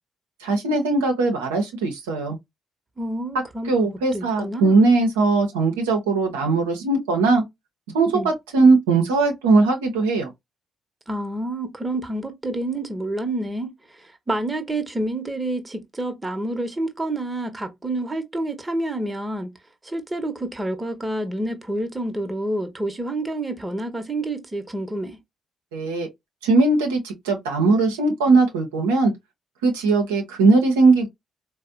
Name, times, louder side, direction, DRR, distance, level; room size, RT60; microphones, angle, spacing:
voice 1, 0.4-2.4 3.7-7.4 7.9-8.1 8.5-10.3 25.7-26.1 26.4-29.1 29.6-31.1, right 3 dB, 75° right, 0.6 m, -19 dB
voice 2, 3.0-4.8 8.1-8.3 11.1-19.5 19.8-25.2, right 1 dB, 20° right, 0.8 m, -28 dB
4.1 x 2.1 x 2.5 m
figure-of-eight pair, 40°, 0 cm